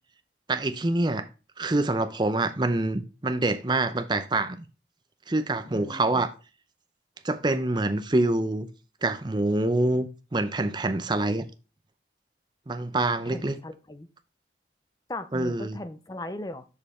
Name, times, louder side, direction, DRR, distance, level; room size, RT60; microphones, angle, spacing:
voice 1, 0.5-1.3 1.6-4.7 5.3-6.3 7.2-8.7 9.0-11.5 12.7-13.6 15.3-15.8, right 2 dB, 25° right, 0.6 m, -26 dB
voice 2, 5.7-6.2 13.2-14.1 15.1-16.6, left 1 dB, 20° left, 0.6 m, -38 dB
6.6 x 5.2 x 4.2 m
head